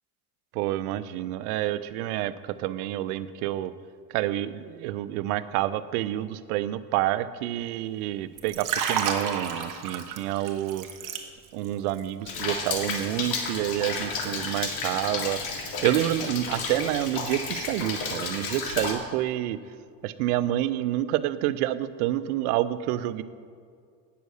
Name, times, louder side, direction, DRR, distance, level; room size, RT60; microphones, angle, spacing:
voice 1, 0.5-3.7 4.1-10.9 11.5-19.8 20.0-23.2, right 13 dB, 75° right, 15 dB, 0.7 m, -28 dB
Liquid, 8.3-11.7 12.0-12.3, right 7 dB, 45° right, 1.3 m, -31 dB
Rain, 12.3-18.9, left 4 dB, 50° left, 2.1 m, -32 dB
9.2 x 7.0 x 6.4 m, 2.2 s
supercardioid pair, 110°, 46 cm